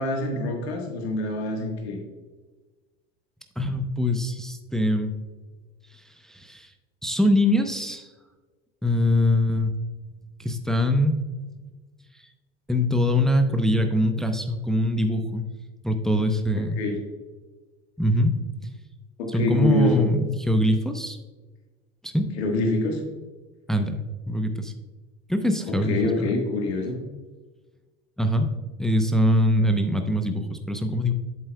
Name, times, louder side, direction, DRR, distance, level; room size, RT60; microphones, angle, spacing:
voice 1, 0.0-2.0 16.8-17.0 19.2-20.1 22.4-23.0 25.7-27.0, left 2 dB, 85° left, 2 dB, 1.4 m, -25 dB
voice 2, 3.6-5.1 6.3-6.7 7.0-8.1 8.8-9.7 10.4-11.1 12.7-15.5 15.8-16.8 18.0-18.3 19.3-21.2 22.0-22.3 23.7-24.7 25.3-26.3 28.2-28.5 28.8-31.1, left 1 dB, ahead, 6 dB, 0.6 m, -23 dB
8.2 x 7.5 x 2.2 m, 1.3 s
hypercardioid pair, 90°, 31 cm